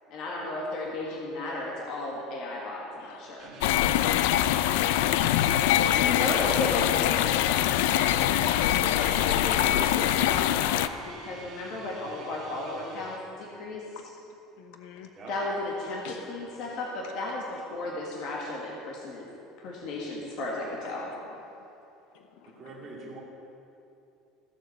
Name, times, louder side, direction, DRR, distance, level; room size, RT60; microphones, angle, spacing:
voice 1, 0.1-3.5 5.8-7.6 8.8-13.8 15.3-19.3 19.6-21.1, left 2 dB, 45° left, -3 dB, 1.7 m, -34 dB
sound 1, 3.4-13.2, right 4 dB, 35° right, 1.6 m, -49 dB
sound 2, 3.6-10.9, left 12 dB, 90° left, 0.4 m, -24 dB
voice 2, 5.8-6.6 7.5-7.7 13.9-14.1 14.6-15.1 16.0-16.3 17.0-17.4 20.7-21.6 22.1-22.7, left 7 dB, 65° left, 5 dB, 0.8 m, -46 dB
Wind instrument woodwind instrument, 7.8-11.5, right 6 dB, 85° right, 1.1 m, -44 dB
voice 3, 22.5-23.2, right 3 dB, 20° right, -4 dB, 2.3 m, -44 dB
15.0 x 7.5 x 6.9 m, 2.8 s
cardioid pair, 180°, 0 cm